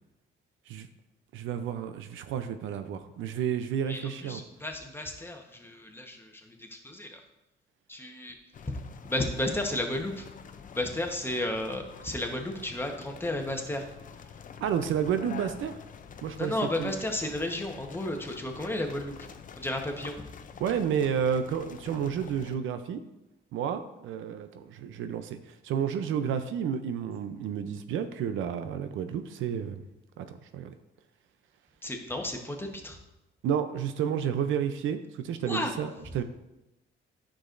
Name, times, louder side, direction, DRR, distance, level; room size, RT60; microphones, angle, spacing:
voice 1, 1.3-4.4 14.6-15.8 16.2-16.5 16.8-16.9 20.6-23.0 23.5-29.8 30.2-30.7 33.4-36.2, right 8 dB, 80° right, 9 dB, 0.6 m, -31 dB
voice 2, 3.9-7.2 7.9-8.4 9.0-10.3 10.7-13.8 16.4-19.1 19.6-20.3 31.8-33.0 35.4-35.7, left 1 dB, 10° left, 3 dB, 1.1 m, -33 dB
sound 1, 8.5-22.6, left 7 dB, 40° left, 0.6 m, -47 dB
9.7 x 6.2 x 2.6 m, 0.95 s
cardioid pair, 90°, 20 cm